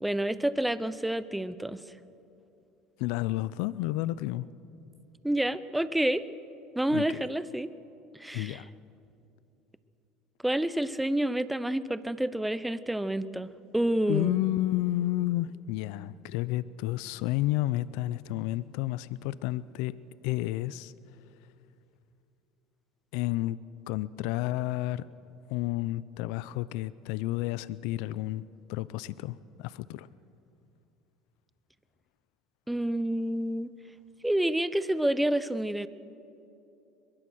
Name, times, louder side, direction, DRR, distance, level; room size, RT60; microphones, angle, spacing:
voice 1, 0.0-1.8 5.2-6.2 6.8-7.7 8.2-8.6 10.4-14.4 32.7-33.7 34.2-35.9, right 1 dB, 5° right, 15 dB, 0.8 m, -28 dB
voice 2, 3.0-4.5 6.9-7.1 8.3-8.6 14.1-19.9 20.2-20.9 23.1-23.6 23.9-25.1 25.5-28.4 28.7-30.1, left 16 dB, 75° left, 18 dB, 0.5 m, -31 dB
22.5 x 21.5 x 6.3 m, 2.8 s
supercardioid pair, 105°, 0 cm